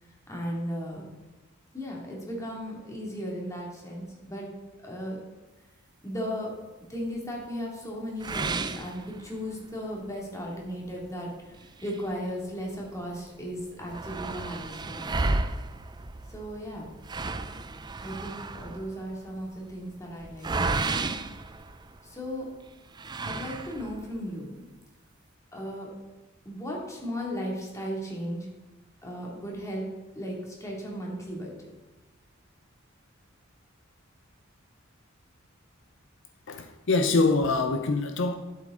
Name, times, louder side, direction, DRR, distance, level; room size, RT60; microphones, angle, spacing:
voice 1, 0.3-1.1 1.7-4.5 4.8-5.2 6.0-6.5 6.9-15.3 16.3-16.9 18.0-21.1 22.0-22.5 23.2-24.6 25.5-25.9 26.4-28.5 29.0-29.9 30.1-31.5, equal, 15° left, -2 dB, 2.3 m, -36 dB
sound 1, 8.2-9.7 10.1-10.2 10.7-10.8 11.5-12.9 13.2-13.3 13.5-22.3 22.9-24.1, right 3 dB, 20° right, 0.4 m, -33 dB
voice 2, 36.5-38.3, left 3 dB, 65° left, 6 dB, 0.6 m, -24 dB
12.0 x 7.6 x 3.8 m, 1.1 s
head